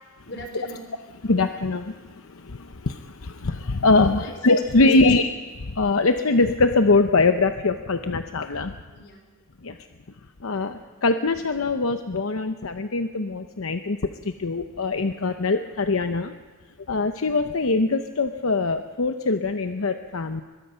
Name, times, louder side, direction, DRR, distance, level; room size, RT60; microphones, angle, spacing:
voice 1, 0.3-0.9 4.2-5.2 8.9-9.4 9.8-10.0, equal, 55° left, 3 dB, 4.3 m, -41 dB
voice 2, 1.2-5.3 5.7-8.8 9.6-9.8 10.4-14.0 14.2-16.3 16.9-20.4, left 3 dB, 85° left, 7 dB, 0.8 m, -22 dB
23.0 x 21.5 x 5.7 m, 1.4 s
head